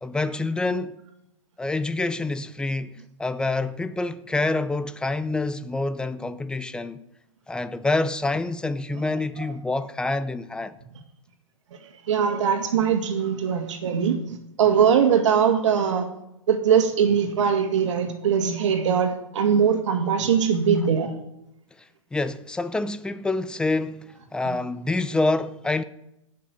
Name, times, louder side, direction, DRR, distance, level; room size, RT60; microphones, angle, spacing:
voice 1, 0.0-1.0 1.6-7.0 7.5-10.8 21.8-25.8, left 2 dB, 5° left, 0.6 m, -27 dB
voice 2, 12.1-16.1 16.5-21.1 24.5-24.6, right 7 dB, 60° right, 2.3 m, -21 dB
18.5 x 6.7 x 6.8 m
hypercardioid pair, 120°, 17 cm